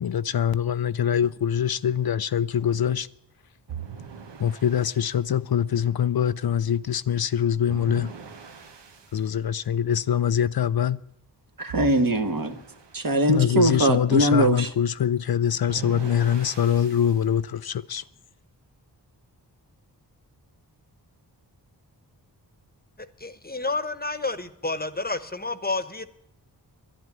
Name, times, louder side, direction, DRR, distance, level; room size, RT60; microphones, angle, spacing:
voice 1, 0.0-3.1 4.4-8.1 9.1-11.0 13.3-18.0, left 9 dB, 60° left, 0.5 m, -24 dB
sound 1, 3.7-5.1 7.7-9.2 11.7-13.1 15.7-17.2, right 6 dB, 80° right, 1.3 m, -40 dB
voice 2, 11.6-12.6 12.9-14.7, right 1 dB, 55° right, 1.6 m, -22 dB
voice 3, 23.2-26.1, left 3 dB, 20° left, 1.1 m, -30 dB
11.0 x 11.0 x 9.5 m
cardioid pair, 50°, 42 cm